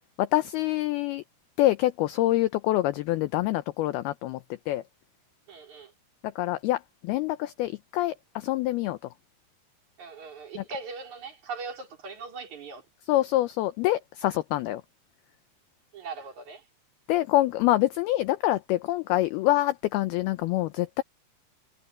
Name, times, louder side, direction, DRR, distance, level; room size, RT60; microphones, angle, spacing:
voice 1, 0.2-1.2 1.6-4.4 4.7-4.8 6.4-9.0 10.6-10.7 13.1-14.8 17.1-21.0, left 16 dB, 80° left, 2.2 m, -26 dB
voice 2, 5.5-5.9 10.0-12.8 15.9-16.6, right 4 dB, 40° right, 5.3 m, -40 dB
omnidirectional pair, 5.2 m